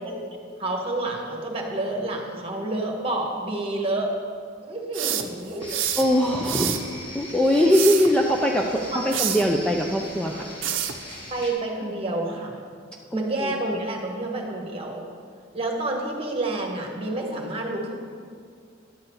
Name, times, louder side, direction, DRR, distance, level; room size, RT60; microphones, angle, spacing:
voice 1, 0.0-4.1 4.6-5.8 8.9-9.0 11.3-12.6 13.1-15.0 15.5-17.9, right 2 dB, 30° right, 0 dB, 1.3 m, -29 dB
sound 1, 4.9-6.1 6.4-6.9 7.6-8.1 9.1-9.5 10.6-11.0, right 10 dB, 75° right, 0.6 m, -27 dB
sound 2, 5.6-11.5, left 1 dB, 30° left, 2.0 m, -39 dB
voice 2, 6.0-10.5 13.1-13.5, equal, 5° left, 0 dB, 0.4 m, -22 dB
11.0 x 4.2 x 7.8 m, 2.2 s
head